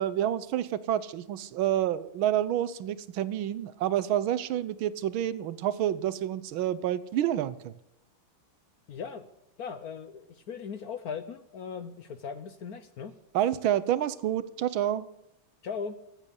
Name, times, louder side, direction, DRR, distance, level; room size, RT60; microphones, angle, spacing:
voice 1, 0.0-7.8 13.3-15.1, right 11 dB, 80° right, 16 dB, 1.5 m, -28 dB
voice 2, 8.9-9.3 9.6-13.1 15.6-16.0, left 6 dB, 60° left, 11 dB, 1.0 m, -38 dB
15.5 x 8.1 x 9.9 m, 0.83 s
omnidirectional pair, 2.3 m